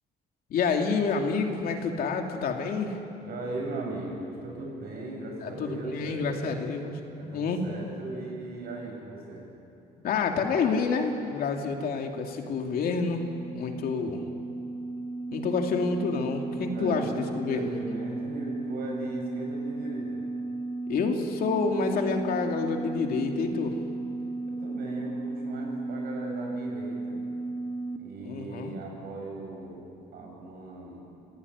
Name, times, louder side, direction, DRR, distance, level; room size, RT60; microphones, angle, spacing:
voice 1, 0.5-3.0 5.4-6.9 7.3-7.6 10.0-13.2 13.5-14.2 15.3-17.7 20.9-23.8 28.2-28.7, left 5 dB, 60° left, 3 dB, 2.7 m, -28 dB
voice 2, 3.2-6.6 7.2-9.4 16.6-17.2 17.5-20.2 24.5-27.2 28.0-29.9 30.1-31.0, right 2 dB, 65° right, 0 dB, 7.9 m, -38 dB
sound 1, 11.8-28.0, right 2 dB, 20° left, 1.7 m, -35 dB
25.5 x 16.0 x 9.7 m, 2.6 s
cardioid pair, 110°, 17 cm